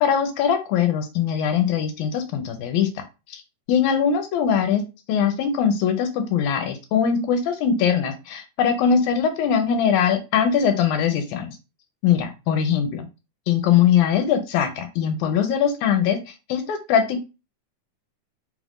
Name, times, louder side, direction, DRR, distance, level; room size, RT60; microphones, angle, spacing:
voice 1, 0.0-3.0 3.3-3.4 3.7-4.8 5.1-11.6 12.0-13.1 13.5-16.2 16.5-17.2, left 8 dB, 85° left, 7 dB, 2.1 m, -21 dB
4.5 x 3.6 x 2.4 m, 0.29 s
omnidirectional pair, 3.5 m